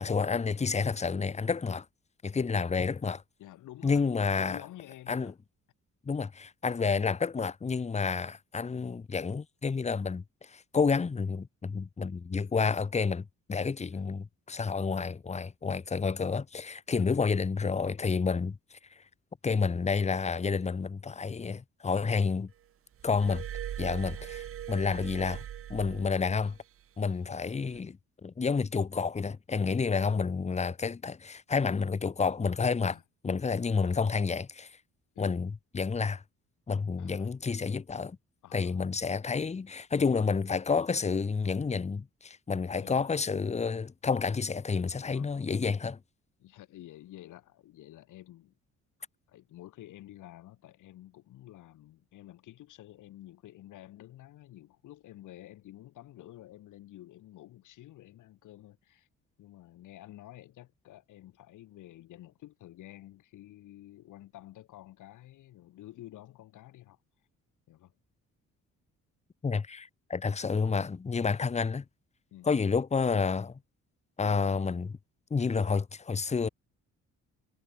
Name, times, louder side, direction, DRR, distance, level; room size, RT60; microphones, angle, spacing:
voice 1, 0.0-1.8 2.2-3.2 3.8-4.6 5.1-5.3 6.0-18.6 19.4-22.5 23.0-23.4 23.8-25.4 25.7-26.6 27.0-33.0 33.2-34.8 35.2-36.2 36.7-38.2 38.5-46.0 69.4-71.8 72.4-73.6 74.2-75.0 75.3-76.5, left 5 dB, 20° left, 0.9 m, -30 dB
voice 2, 3.4-4.0 4.4-5.4 13.9-14.0 16.9-17.1 24.1-24.3 27.3-27.5 32.8-33.0 35.2-35.4 37.0-37.3 38.4-38.8 42.8-43.1 45.1-45.3 46.4-48.5 49.3-59.1 59.4-67.0 67.7-67.9 72.3-72.5, left 14 dB, 85° left, 5.1 m, -50 dB
Glass, 23.0-26.6 27.6-27.8, right 11 dB, 45° right, 0.6 m, -40 dB
cardioid pair, 90°, 30 cm